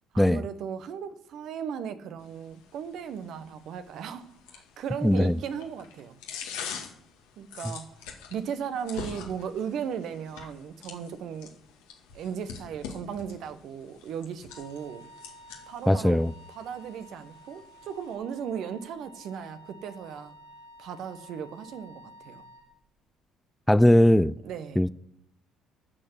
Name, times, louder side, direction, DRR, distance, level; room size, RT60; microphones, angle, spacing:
voice 1, 0.1-6.2 7.4-7.9 8.3-11.5 12.1-15.0 15.7-16.2 16.5-20.4 20.8-22.4 24.4-24.8, right 8 dB, 65° right, 1.2 m, -36 dB
sound 1, 2.2-18.1, left 6 dB, 80° left, 2.0 m, -45 dB
voice 2, 5.0-5.4 15.9-16.3 23.7-24.3 24.8-24.9, left 1 dB, 5° left, 0.4 m, -19 dB
Wind instrument woodwind instrument, 14.5-22.7, equal, 85° right, 3.5 m, -51 dB
13.5 x 6.7 x 8.2 m
hypercardioid pair, 55°, 0 cm